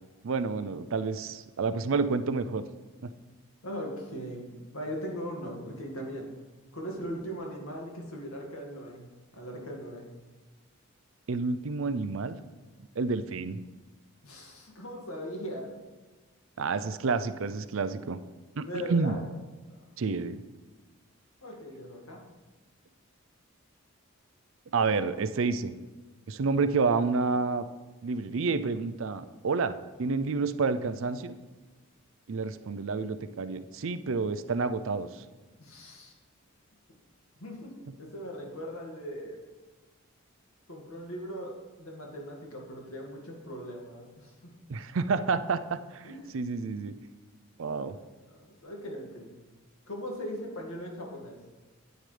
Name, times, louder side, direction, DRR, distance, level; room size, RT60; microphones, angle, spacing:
voice 1, 0.2-2.6 3.0-3.1 11.3-12.4 13.0-13.6 16.6-18.2 18.6-19.2 20.0-20.4 24.7-25.7 26.3-27.6 28.0-31.4 32.3-35.1 44.7-46.1 46.3-46.9 47.6-48.0, right 4 dB, 65° right, 12 dB, 0.5 m, -29 dB
voice 2, 3.6-6.3 6.7-9.1 9.3-10.1 14.2-15.7 18.7-19.2 19.7-19.8 21.4-22.2 35.6-36.1 37.4-39.4 40.7-44.3 46.0-46.5 47.7-49.3 49.9-51.4, equal, 75° left, 0 dB, 2.0 m, -39 dB
9.6 x 9.1 x 3.3 m, 1.3 s
head